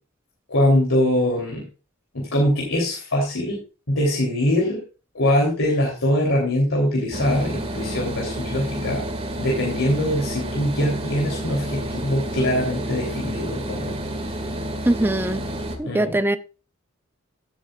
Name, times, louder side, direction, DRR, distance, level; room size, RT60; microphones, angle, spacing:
voice 1, 0.5-1.7 2.1-3.6 3.9-4.8 5.1-9.0 9.4-14.0 15.8-16.1, left 1 dB, 65° left, 3.3 m, -22 dB
sound 1, 7.1-15.8, right 1 dB, 30° right, 2.1 m, -30 dB
voice 2, 14.8-15.4 15.8-16.4, right 1 dB, 10° right, 0.7 m, -21 dB
16.5 x 7.8 x 2.4 m
head